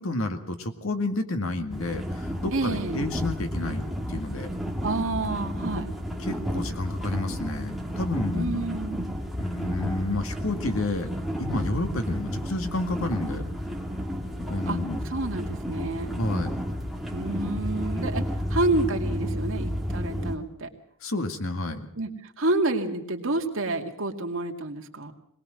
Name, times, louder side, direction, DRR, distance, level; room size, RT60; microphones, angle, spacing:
voice 1, 0.0-4.5 6.2-8.6 9.4-11.1 11.4-13.4 14.5-15.0 16.2-16.6 21.0-21.9, left 2 dB, 75° left, 7 dB, 2.1 m, -30 dB
sound 1, 1.7-20.4, equal, ahead, 2.1 m, -32 dB
voice 2, 2.5-3.1 4.8-5.9 8.3-9.2 14.7-14.8 15.0-16.1 17.1-18.2 18.5-20.7 22.0-22.1 22.4-25.1, right 2 dB, 65° right, 3 dB, 2.3 m, -29 dB
21.5 x 19.5 x 6.4 m, 0.70 s
head